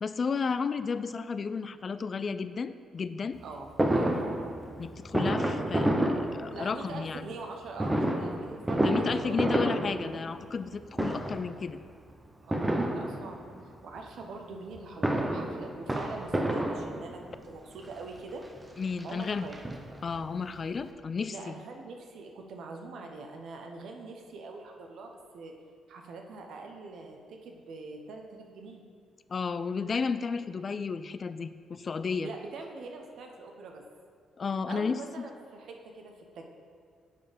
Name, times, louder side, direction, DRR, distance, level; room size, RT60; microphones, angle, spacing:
voice 1, 0.0-3.4 4.8-7.2 8.8-11.8 18.8-19.4 20.0-21.5 29.3-32.3 34.4-35.0, left 5 dB, 40° left, 13 dB, 0.3 m, -32 dB
voice 2, 3.4-4.6 6.5-9.6 12.4-13.5 13.8-18.4 19.0-19.6 21.3-25.5 25.9-28.8 32.2-33.8 34.7-36.4, right 3 dB, 70° right, 3 dB, 0.9 m, -43 dB
Fireworks, 3.8-7.0 7.8-10.7 10.9-11.6 12.5-13.6 14.7-17.4 18.2-18.3 18.6-18.7 19.0-20.2 20.6-20.7 20.8-20.9, right 1 dB, 15° right, 0.7 m, -29 dB
6.7 x 5.4 x 5.1 m, 2.1 s
cardioid pair, 90°, 0 cm